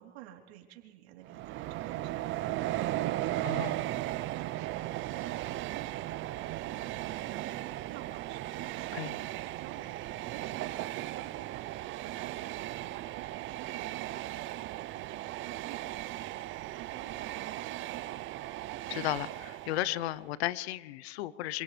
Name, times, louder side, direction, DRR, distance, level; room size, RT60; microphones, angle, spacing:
voice 1, 0.0-3.9 4.2-17.9, right 12 dB, 75° right, 1 dB, 3.8 m, -52 dB
Train, 1.3-20.2, right 15 dB, 40° right, 0.7 m, -37 dB
voice 2, 3.4-3.7 8.9-9.1 18.9-21.6, left 15 dB, 80° left, 18 dB, 0.9 m, -34 dB
28.0 x 27.0 x 3.4 m, 1.5 s
supercardioid pair, 125°, 32 cm